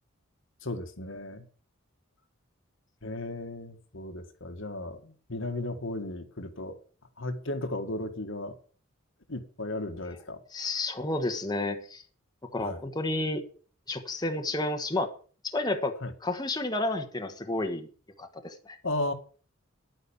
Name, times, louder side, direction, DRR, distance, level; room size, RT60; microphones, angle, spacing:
voice 1, 0.6-1.5 3.0-6.8 7.2-8.6 9.3-10.4 12.6-12.8 16.0-16.1 18.8-19.1, left 2 dB, 70° left, 1.8 m, -35 dB
voice 2, 10.5-12.0 12.5-13.4 13.9-15.1 15.4-15.9 16.2-17.9 18.2-18.7, left 2 dB, 20° left, 1.4 m, -31 dB
10.5 x 9.5 x 7.2 m
head